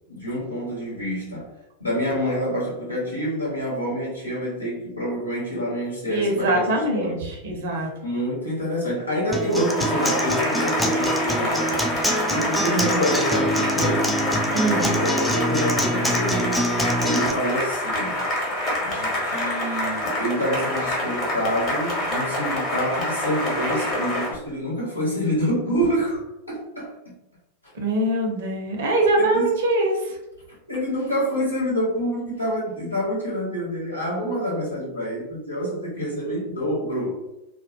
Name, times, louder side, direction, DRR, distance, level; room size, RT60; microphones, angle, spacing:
voice 1, 0.1-1.5 1.8-6.6 6.9-7.2 7.7-11.8 12.3-14.1 14.6-18.2 18.8-27.0 29.2-29.5 30.7-37.1, equal, 85° left, -6 dB, 1.0 m, -27 dB
voice 2, 6.1-7.9 14.5-14.9 27.7-30.2, right 1 dB, 60° right, 1 dB, 0.6 m, -23 dB
Acoustic guitar, 9.3-17.3, equal, ahead, 0.3 m, -25 dB
Cheering / Applause, 9.5-24.4, left 1 dB, 35° left, 1.0 m, -26 dB
2.2 x 2.0 x 2.9 m, 0.93 s
figure-of-eight pair, 90°, 0 cm